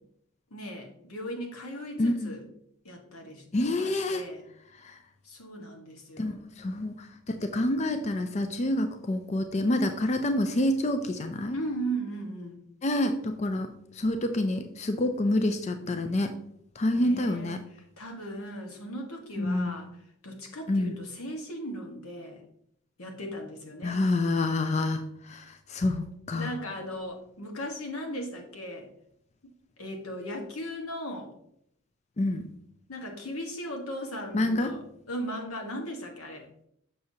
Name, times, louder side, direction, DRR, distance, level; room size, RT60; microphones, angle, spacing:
voice 1, 0.5-2.4 2.8-3.4 3.8-4.4 5.2-6.4 11.5-12.6 16.9-19.9 20.2-22.4 23.0-24.1 26.3-28.9 29.4-31.3 32.9-36.5, equal, 90° left, 3 dB, 1.4 m, -37 dB
voice 2, 2.0-2.4 3.5-4.2 6.2-7.0 7.4-11.6 12.8-13.7 14.0-16.3 16.8-17.6 19.4-19.8 20.7-20.9 23.8-26.5 32.2-32.5 34.3-34.7, left 1 dB, 30° left, 7 dB, 0.4 m, -27 dB
6.9 x 6.4 x 2.7 m, 0.72 s
head